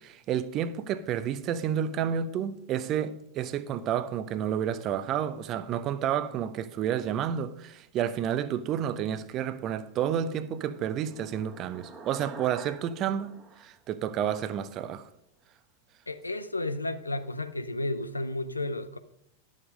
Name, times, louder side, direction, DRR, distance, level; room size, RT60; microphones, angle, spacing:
voice 1, 0.0-15.1, right 9 dB, 35° right, 0.7 m, -30 dB
sound 1, 9.9-14.6, right 4 dB, 20° right, 1.4 m, -48 dB
voice 2, 16.1-19.0, left 2 dB, 80° left, 0.6 m, -32 dB
11.0 x 7.4 x 5.1 m
figure-of-eight pair, 90°, 0 cm